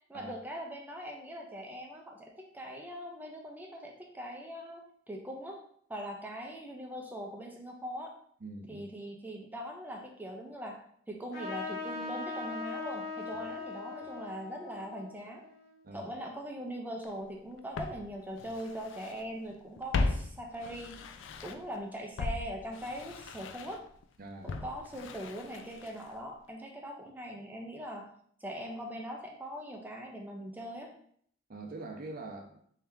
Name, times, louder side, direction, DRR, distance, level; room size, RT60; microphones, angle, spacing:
voice 1, 0.1-5.6 5.9-8.1 8.7-10.8 11.1-15.4 15.9-21.0 21.4-23.8 24.4-28.1 28.4-30.9, equal, 10° right, 1 dB, 0.5 m, -41 dB
voice 2, 8.4-8.9 13.4-13.5 14.0-14.1 15.8-16.1 24.2-24.6 31.5-32.6, right 2 dB, 50° right, 3 dB, 0.6 m, -44 dB
Trumpet, 11.3-16.3, left 3 dB, 60° left, 1.2 m, -41 dB
Walk footsteps, 17.0-17.1 17.7-19.2 19.5-21.8 22.2-26.2 26.5-26.6, left 3 dB, 75° left, 0.3 m, -37 dB
3.3 x 2.8 x 3.5 m, 0.63 s
head